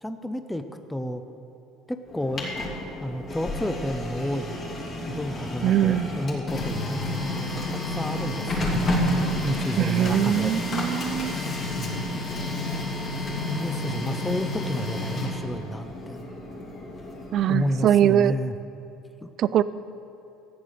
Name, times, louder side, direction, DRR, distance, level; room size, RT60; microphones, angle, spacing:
voice 1, 0.0-1.2 1.9-2.6 3.0-4.6 5.1-8.9 9.4-10.5 11.8-12.1 13.5-16.2 17.5-18.5 19.2-19.3, equal, 5° left, 7 dB, 0.6 m, -31 dB
Printer, 2.1-17.9, left 1 dB, 35° left, 2.6 m, -30 dB
voice 2, 5.6-6.1 9.8-11.3 17.3-18.3 19.4-19.6, right 10 dB, 45° right, 16 dB, 0.4 m, -22 dB
14.0 x 9.4 x 6.6 m, 3.0 s
cardioid pair, 140°, 0 cm